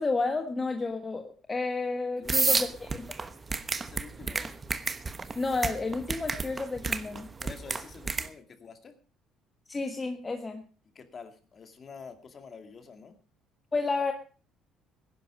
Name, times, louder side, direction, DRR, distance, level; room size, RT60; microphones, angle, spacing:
voice 1, 0.0-3.2 5.3-7.3 9.7-10.6 13.7-14.1, left 3 dB, 20° left, 5 dB, 1.4 m, -31 dB
voice 2, 2.2-2.6 3.8-4.5 7.4-8.9 10.9-13.2, left 5 dB, 35° left, 8 dB, 2.3 m, -47 dB
sound 1, 2.3-8.3, right 4 dB, 25° right, 1.1 m, -30 dB
17.5 x 10.5 x 5.1 m, 0.38 s
cardioid pair, 110°, 0 cm